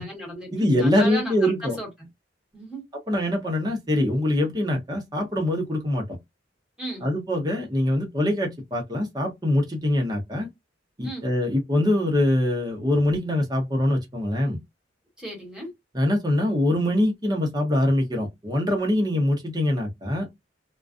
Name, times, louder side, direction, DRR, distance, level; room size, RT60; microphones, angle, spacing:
voice 1, 0.0-1.9 2.5-2.8 6.8-7.1 11.0-11.3 15.2-15.7, equal, 5° right, 1.3 m, -35 dB
voice 2, 0.5-1.8 3.1-6.1 7.0-10.5 11.0-14.6 15.9-20.3, left 1 dB, 20° right, 0.8 m, -23 dB
2.4 x 2.2 x 2.4 m
head